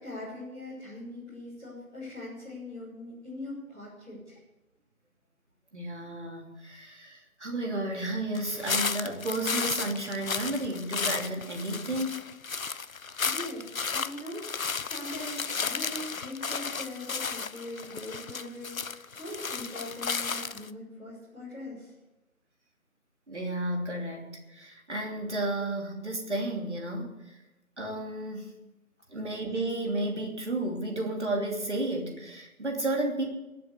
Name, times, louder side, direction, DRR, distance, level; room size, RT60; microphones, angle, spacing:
voice 1, 0.0-4.4 12.7-12.8 13.2-21.9, left 1 dB, ahead, -20 dB, 1.8 m, -41 dB
voice 2, 5.7-12.2 23.3-27.2 27.8-28.5 29.1-33.2, right 1 dB, 50° right, 1 dB, 3.1 m, -32 dB
sound 1, 8.3-20.7, left 5 dB, 65° left, 0.6 m, -33 dB
21.0 x 7.7 x 6.7 m, 1.0 s
figure-of-eight pair, 170°, 44 cm